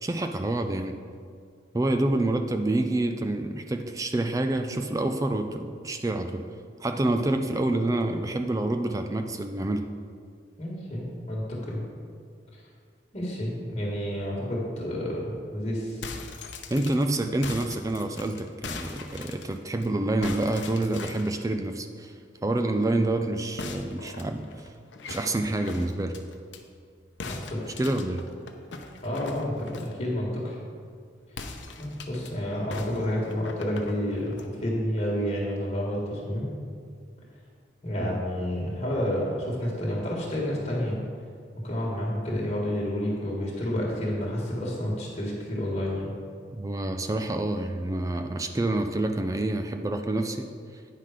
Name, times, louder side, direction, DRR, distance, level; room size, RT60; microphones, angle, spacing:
voice 1, 0.0-1.0 1.7-6.5 6.8-9.9 16.7-22.1 22.4-24.7 25.1-26.2 27.8-28.3 38.0-38.2 46.5-50.5, right 2 dB, 20° right, 7 dB, 0.4 m, -27 dB
voice 2, 10.6-11.8 13.1-16.0 27.2-27.8 29.0-30.6 31.8-36.5 37.8-41.0 41.6-46.1, equal, 35° left, -3 dB, 1.6 m, -30 dB
sound 1, 15.8-19.9 20.2-21.4 23.6-26.6 27.2-30.0 31.3-32.3 32.7-34.5, left 4 dB, 80° left, 0.7 m, -41 dB
9.2 x 5.8 x 4.9 m, 2.1 s
head